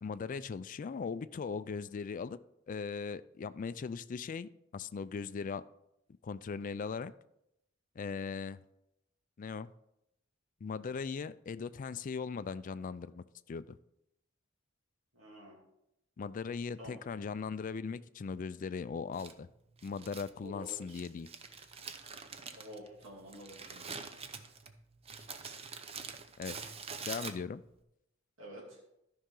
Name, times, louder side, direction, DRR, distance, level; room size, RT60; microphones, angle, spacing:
voice 1, 0.0-2.4 2.7-5.6 6.2-7.1 8.0-8.6 9.4-9.7 10.6-13.8 16.2-19.5 19.8-21.3 26.4-26.6 27.0-27.6, left 5 dB, 40° left, 14 dB, 0.3 m, -39 dB
voice 2, 15.1-15.6 16.8-17.0 20.4-21.0 22.5-24.1 28.4-28.8, equal, 85° right, -4 dB, 2.6 m, -49 dB
Crumpling crinkling, 19.1-27.8, right 5 dB, 30° right, 0.6 m, -46 dB
13.0 x 5.6 x 3.8 m, 0.83 s
head